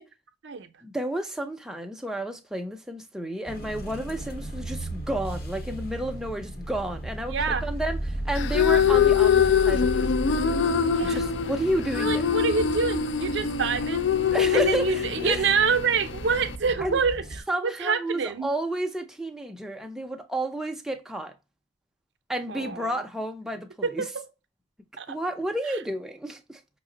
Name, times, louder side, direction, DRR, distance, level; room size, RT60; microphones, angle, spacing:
voice 1, 0.8-7.4 7.6-10.3 11.0-12.3 14.3-15.5 16.8-17.0 17.5-21.3 22.3-24.1 25.1-26.6, right 1 dB, 5° right, 0.4 m, -31 dB
sound 1, 3.5-17.4, right 1 dB, 50° left, 0.8 m, -35 dB
voice 2, 7.3-7.7 11.0-11.2 12.0-14.1 14.5-18.5 22.5-23.0 23.8-24.3 25.0-25.2, right 5 dB, 60° right, 0.5 m, -27 dB
sound 2, 8.3-16.6, left 7 dB, 65° left, 0.3 m, -24 dB
5.8 x 2.0 x 3.7 m
head